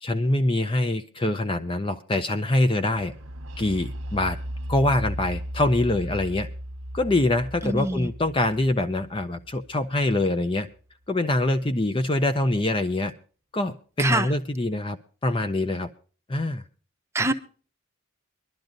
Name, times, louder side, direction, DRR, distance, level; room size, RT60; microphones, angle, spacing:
voice 1, 0.0-3.1 3.6-4.4 4.7-6.5 6.9-10.7 11.1-13.1 13.5-15.0 15.2-15.9 16.3-16.6 17.2-17.3, left 1 dB, 25° left, 0.5 m, -24 dB
sound 1, 2.9-10.6, equal, 75° right, 0.9 m, -36 dB
voice 2, 7.6-8.1 14.0-14.3 17.1-17.3, right 2 dB, 15° right, 0.8 m, -24 dB
23.5 x 12.0 x 2.6 m
head